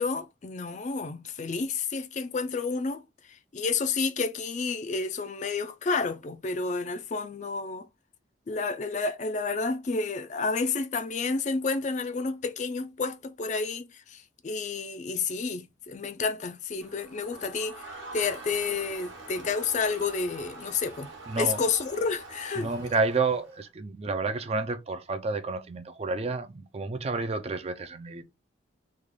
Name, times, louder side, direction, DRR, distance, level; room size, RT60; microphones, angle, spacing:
voice 1, 0.0-7.9 8.5-21.1 21.4-22.7, left 4 dB, 35° left, 0.4 m, -30 dB
Crowd, 16.8-23.6, right 2 dB, 70° right, 1.1 m, -44 dB
voice 2, 21.3-21.6 22.6-28.2, right 3 dB, 30° right, 0.4 m, -30 dB
3.2 x 2.3 x 3.6 m
head